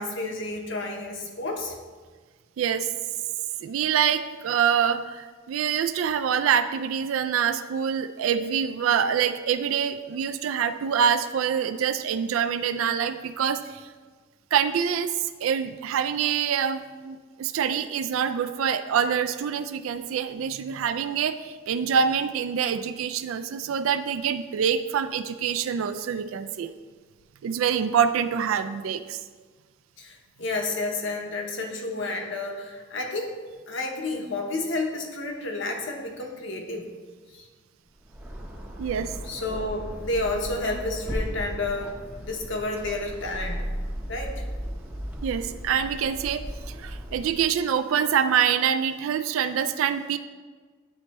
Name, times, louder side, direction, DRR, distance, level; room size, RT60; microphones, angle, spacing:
voice 1, 0.0-1.8 30.0-33.3 33.7-36.8 37.3-37.5 39.2-43.6 44.1-44.3, left 2 dB, 65° left, 2 dB, 1.0 m, -31 dB
voice 2, 2.6-2.9 3.6-13.9 14.5-26.7 27.4-29.2 38.8-39.1 45.2-50.2, right 8 dB, 80° right, 10 dB, 0.3 m, -25 dB
sound 1, 38.0-47.5, equal, 10° right, 0.6 m, -36 dB
9.5 x 3.3 x 4.2 m, 1.4 s
head